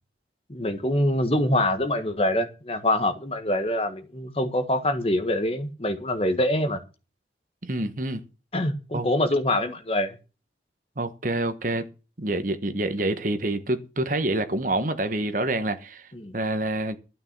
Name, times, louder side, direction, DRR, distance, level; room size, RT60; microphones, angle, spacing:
voice 1, 0.5-6.8 8.5-10.2 16.1-16.3, left 1 dB, 30° left, 1.5 m, -25 dB
voice 2, 7.6-8.2 8.9-9.1 11.0-11.9 12.2-16.1 16.3-17.0, right 2 dB, 45° right, 1.3 m, -27 dB
12.0 x 9.6 x 6.1 m
head